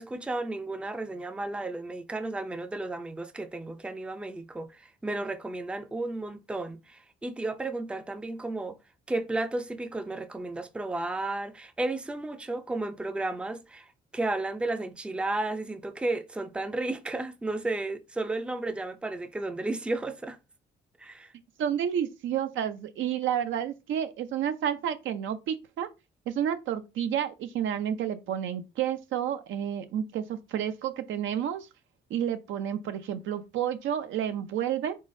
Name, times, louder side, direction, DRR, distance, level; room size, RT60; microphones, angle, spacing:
voice 1, 0.0-8.8 9.1-13.9 14.1-20.4 21.0-21.3, right 2 dB, 5° right, 0.4 m, -33 dB
voice 2, 21.6-25.9 26.3-31.7 32.1-35.0, right 9 dB, 75° right, 0.6 m, -30 dB
4.0 x 3.7 x 2.6 m
cardioid pair, 90°, 20 cm